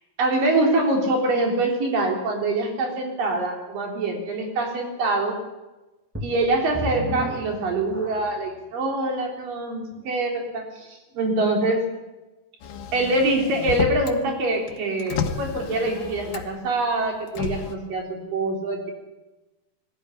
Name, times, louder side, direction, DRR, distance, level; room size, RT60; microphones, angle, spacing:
voice 1, 0.2-5.4 6.2-11.8 12.9-18.9, right 2 dB, 85° right, 1 dB, 5.4 m, -24 dB
sound 1, 6.1-8.6 9.2-9.3 9.9-10.0, left 1 dB, 5° right, 2.4 m, -33 dB
Motor vehicle (road), 12.6-14.2 14.6-16.7 17.3-17.7, left 6 dB, 85° left, 3.2 m, -31 dB
21.0 x 14.5 x 10.0 m, 1.1 s
omnidirectional pair, 3.8 m